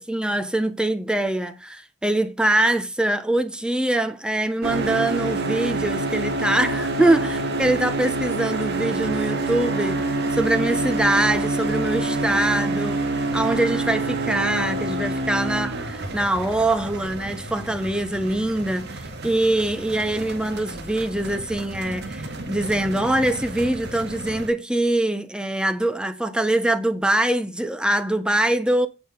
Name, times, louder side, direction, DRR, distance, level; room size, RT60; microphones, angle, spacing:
voice 1, 0.0-10.0 10.3-28.9, right 1 dB, 5° right, 0.9 m, -23 dB
sound 1, 4.6-24.5, right 2 dB, 55° right, 2.0 m, -27 dB
8.7 x 6.1 x 5.1 m
head